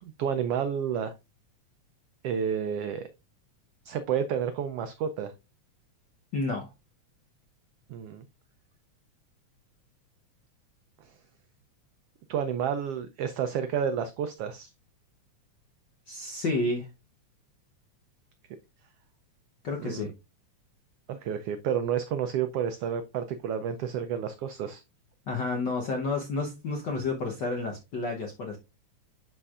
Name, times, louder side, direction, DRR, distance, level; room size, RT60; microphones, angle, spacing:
voice 1, 0.0-1.1 2.2-3.1 3.8-5.3 7.9-8.2 11.0-11.1 12.3-14.7 19.8-20.0 21.1-24.8, right 8 dB, 90° right, 10 dB, 1.3 m, -30 dB
voice 2, 6.3-6.7 16.1-16.9 19.6-20.1 25.3-28.6, left 3 dB, 70° left, 1 dB, 1.0 m, -30 dB
11.0 x 4.4 x 2.4 m, 0.25 s
omnidirectional pair, 3.3 m